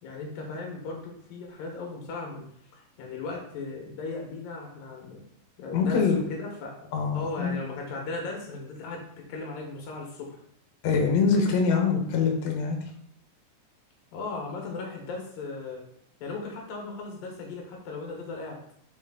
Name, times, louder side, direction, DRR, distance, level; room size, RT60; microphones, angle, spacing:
voice 1, 0.0-2.5 2.7-5.2 5.6-10.4 14.1-15.8 16.2-18.6, left 3 dB, 90° left, 1 dB, 2.9 m, -37 dB
voice 2, 5.7-6.2 6.9-7.5 10.8-12.8, left 5 dB, 65° left, 1 dB, 2.1 m, -24 dB
5.2 x 5.0 x 3.8 m, 0.70 s
omnidirectional pair, 4.0 m